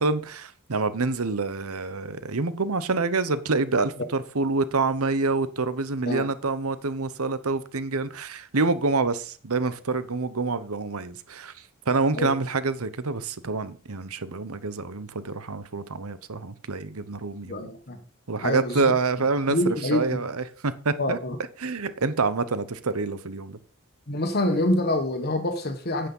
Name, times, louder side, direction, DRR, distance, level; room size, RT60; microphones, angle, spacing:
voice 1, 0.0-11.5 11.9-17.6 18.3-21.2 21.6-23.6, right 3 dB, 80° right, 1.0 m, -27 dB
voice 2, 17.4-18.0 18.4-18.9 19.5-20.2 21.0-21.4 24.1-26.1, left 1 dB, 45° left, 1.4 m, -26 dB
9.8 x 8.6 x 5.5 m
head